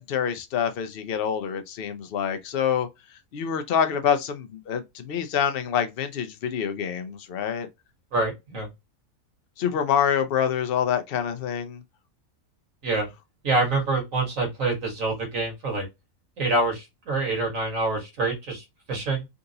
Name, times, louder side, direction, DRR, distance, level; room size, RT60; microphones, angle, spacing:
voice 1, 0.0-2.9 3.3-7.7 9.6-11.8, left 8 dB, 55° left, 0.7 m, -26 dB
voice 2, 8.1-8.7 12.8-13.1 13.4-15.9 16.4-19.3, right 2 dB, 70° right, 1.8 m, -26 dB
3.8 x 2.5 x 2.7 m
omnidirectional pair, 1.4 m